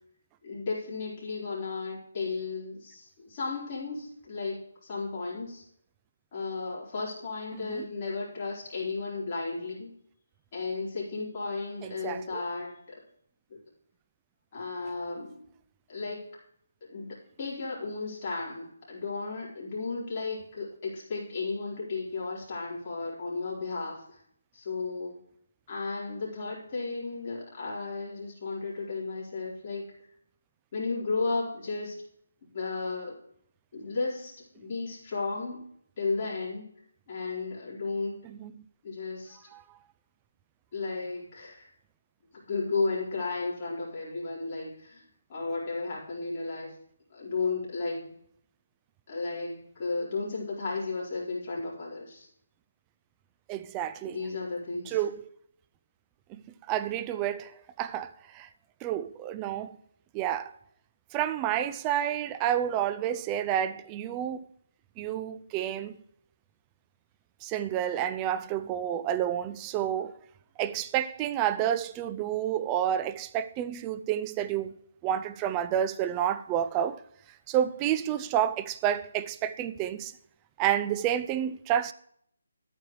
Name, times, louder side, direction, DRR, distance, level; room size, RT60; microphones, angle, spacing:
voice 1, 0.4-5.6 6.3-9.9 10.5-12.8 13.5-13.6 14.5-15.4 15.9-16.2 16.9-24.2 24.5-25.1 25.7-29.9 30.7-31.9 32.5-33.2 33.7-35.6 36.0-36.7 37.1-38.2 38.8-39.4 40.7-41.7 42.4-45.0 45.3-46.7 47.1-48.1 49.1-52.3 54.0-55.0, left 3 dB, 35° left, 4.2 m, -34 dB
voice 2, 7.5-7.9 11.8-12.4 38.2-38.5 39.5-39.6 53.5-54.2 54.9-55.2 56.3-56.4 56.7-58.5 58.8-59.7 60.1-60.5 61.1-64.5 65.0-66.0 67.4-70.1 70.6-74.7 75.0-77.0 77.5-80.1 80.6-81.9, right 10 dB, 15° right, 0.4 m, -29 dB
12.0 x 9.3 x 3.2 m
hypercardioid pair, 160°, 0 cm